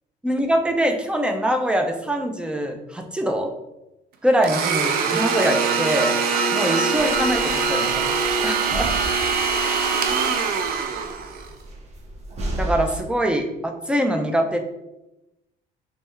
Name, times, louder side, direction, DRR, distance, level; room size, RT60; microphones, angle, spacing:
voice 1, 0.2-3.5 4.2-6.1 6.5-8.1 8.4-8.9 12.6-14.6, equal, 5° right, 4 dB, 0.5 m, -23 dB
Domestic sounds home sounds, 4.4-11.5, right 5 dB, 60° right, 0.5 m, -23 dB
sound 1, 6.9-13.0, right 1 dB, 40° right, 0.8 m, -34 dB
3.3 x 3.2 x 3.2 m, 0.93 s
cardioid pair, 110°, 17 cm